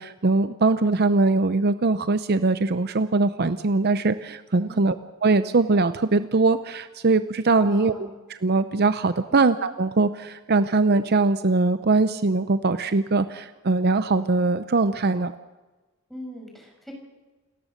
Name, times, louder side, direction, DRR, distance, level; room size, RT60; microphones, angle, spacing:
voice 1, 0.0-5.0 5.2-7.9 8.4-15.3, right 3 dB, 50° right, 12 dB, 0.7 m, -21 dB
voice 2, 7.6-8.1 9.3-9.5 16.1-16.9, equal, ahead, 1 dB, 5.8 m, -41 dB
28.5 x 13.5 x 6.6 m, 1.2 s
head